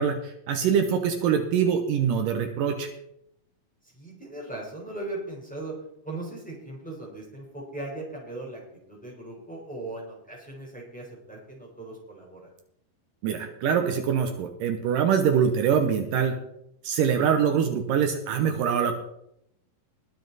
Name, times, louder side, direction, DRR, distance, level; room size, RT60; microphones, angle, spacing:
voice 1, 0.0-2.9 13.2-16.4 16.8-18.9, right 7 dB, 75° right, 6 dB, 2.5 m, -24 dB
voice 2, 3.8-5.7 6.0-8.6 8.9-12.5, right 2 dB, ahead, -2 dB, 3.6 m, -38 dB
20.5 x 7.3 x 4.1 m, 0.77 s
omnidirectional pair, 4.1 m